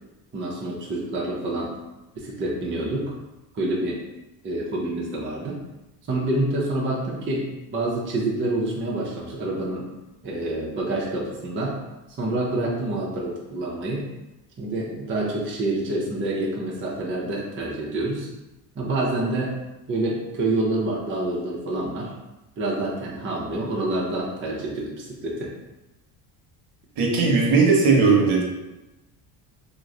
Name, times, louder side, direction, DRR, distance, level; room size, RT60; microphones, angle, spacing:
voice 1, 0.3-1.7 2.2-3.1 3.5-4.0 4.4-5.6 6.1-9.8 10.2-11.8 12.2-14.1 14.6-18.3 18.7-19.5 19.9-22.1 22.6-25.5, right 2 dB, 25° right, -4 dB, 0.6 m, -27 dB
voice 2, 27.0-28.4, right 4 dB, 60° right, -2 dB, 1.0 m, -18 dB
3.0 x 2.1 x 3.6 m, 1.0 s
cardioid pair, 115°, 47 cm